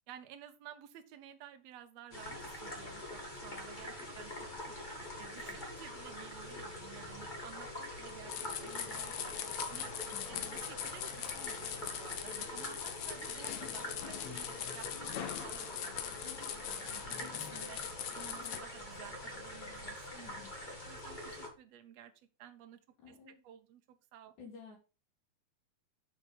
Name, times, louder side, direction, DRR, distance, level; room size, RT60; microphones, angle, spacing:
voice 1, 0.1-4.8 5.2-9.3 9.7-9.9 10.2-14.5 14.7-17.8 18.1-20.4 20.9-22.1 22.4-24.3, right 11 dB, 70° right, 8 dB, 1.7 m, -53 dB
sound 1, 2.1-21.5, left 1 dB, 35° left, 0.8 m, -45 dB
sound 2, 8.3-18.6, left 10 dB, 75° left, 1.6 m, -41 dB
voice 2, 10.1-10.6 20.1-20.5 23.0-23.4 24.4-24.8, left 6 dB, 60° left, -3 dB, 3.0 m, -53 dB
6.3 x 6.3 x 5.2 m, 0.33 s
omnidirectional pair, 4.0 m